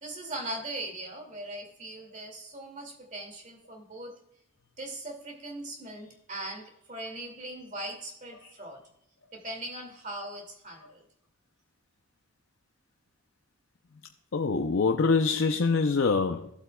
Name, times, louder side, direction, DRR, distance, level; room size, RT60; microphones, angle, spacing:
voice 1, 0.0-4.2 4.8-8.8 9.3-11.0, right 1 dB, 35° right, 2.2 m, -40 dB
voice 2, 14.3-16.5, left 4 dB, 60° left, 0.5 m, -24 dB
14.5 x 8.1 x 2.2 m
head